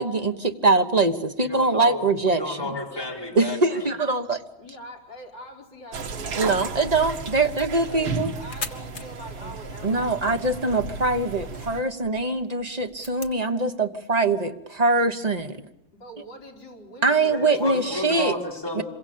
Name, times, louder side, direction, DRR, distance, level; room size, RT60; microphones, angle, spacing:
voice 1, 0.0-2.8 3.3-4.4 6.3-8.3 9.8-15.6 17.0-18.3 18.7-18.8, right 3 dB, 25° right, 6 dB, 1.2 m, -23 dB
voice 2, 1.4-3.9 17.3-18.8, left 2 dB, 10° left, -1 dB, 4.2 m, -31 dB
voice 3, 4.6-7.2 7.8-10.4 15.9-17.5, equal, 70° left, -1 dB, 4.8 m, -44 dB
sound 1, 5.9-11.8, right 4 dB, 90° right, 2.3 m, -34 dB
sound 2, 7.9-13.5, left 3 dB, 30° left, 1.6 m, -43 dB
26.5 x 23.5 x 8.6 m, 0.82 s
omnidirectional pair, 2.0 m